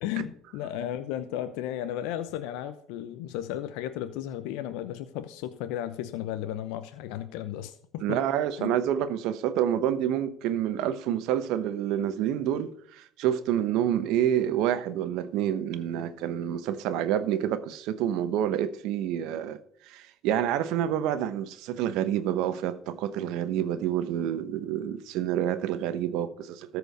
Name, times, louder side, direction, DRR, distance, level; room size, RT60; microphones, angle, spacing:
voice 1, 0.0-8.2 8.6-8.8, left 11 dB, 80° left, 0.7 m, -34 dB
voice 2, 8.0-26.8, right 10 dB, 75° right, 1.0 m, -28 dB
13.5 x 4.9 x 6.6 m
supercardioid pair, 85°, 0 cm